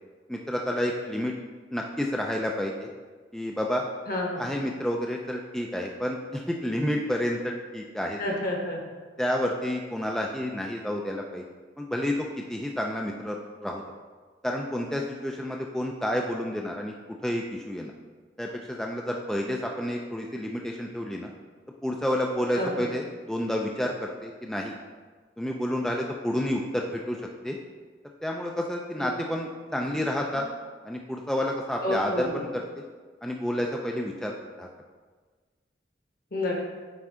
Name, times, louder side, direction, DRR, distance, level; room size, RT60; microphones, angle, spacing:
voice 1, 0.3-1.3 1.7-2.9 3.3-3.9 4.4-8.2 9.2-11.4 11.8-12.1 12.5-13.4 13.6-13.8 14.4-16.9 17.2-17.9 18.4-21.3 21.8-24.7 25.4-27.2 27.4-27.6 28.2-30.5 30.8-32.3 33.2-34.3 34.6-34.7, left 1 dB, 5° left, 0 dB, 0.3 m, -29 dB
voice 2, 4.1-4.5 8.2-8.8 22.5-22.9 29.0-29.1 31.8-32.4 36.3-36.6, left 1 dB, 55° left, 0 dB, 1.2 m, -29 dB
9.1 x 3.6 x 3.6 m, 1.4 s
head